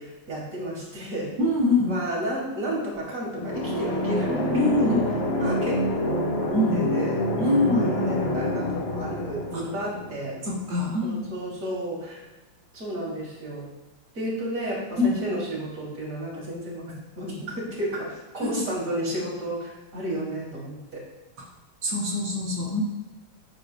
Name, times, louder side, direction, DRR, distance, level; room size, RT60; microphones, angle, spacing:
voice 1, 0.0-1.3 1.6-4.5 4.8-5.0 5.4-10.3 11.0-12.2 12.7-13.6 14.1-21.0, right 1 dB, 40° right, -4 dB, 3.5 m, -32 dB
voice 2, 1.4-1.9 4.5-5.1 5.4-5.5 6.5-6.8 7.4-7.9 9.5-9.6 10.4-11.2 15.0-15.1 18.4-18.6 21.8-22.8, left 2 dB, 90° right, -5 dB, 3.6 m, -24 dB
sound 1, 3.4-11.0, left 1 dB, 35° left, 1.2 m, -27 dB
13.0 x 10.5 x 2.4 m, 1.2 s
omnidirectional pair, 2.3 m